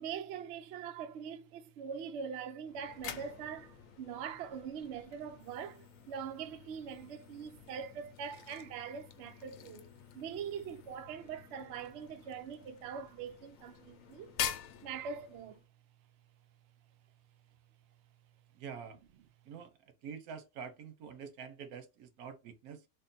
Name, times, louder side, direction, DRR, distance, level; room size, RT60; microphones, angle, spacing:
voice 1, 0.0-9.9 10.1-14.3 14.8-15.6, right 7 dB, 65° right, 0.7 m, -43 dB
sound 1, 2.6-15.7, left 9 dB, 70° left, 0.9 m, -46 dB
voice 2, 18.6-19.0 19.5-19.7 20.0-22.8, right 6 dB, 85° right, 1.2 m, -46 dB
3.6 x 2.2 x 3.9 m
omnidirectional pair, 1.5 m